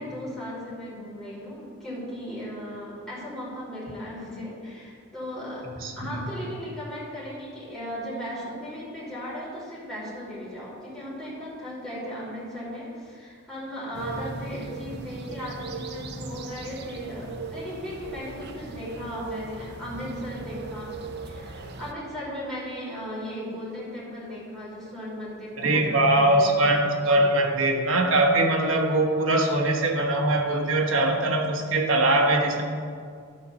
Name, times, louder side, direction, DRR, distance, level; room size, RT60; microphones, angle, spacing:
voice 1, 0.0-5.6 6.0-26.6, equal, ahead, -9 dB, 2.8 m, -37 dB
sound 1, 13.9-21.9, right 3 dB, 50° right, 0.6 m, -38 dB
voice 2, 25.6-32.6, right 1 dB, 70° right, 2 dB, 1.2 m, -22 dB
11.5 x 4.1 x 6.8 m, 2.2 s
head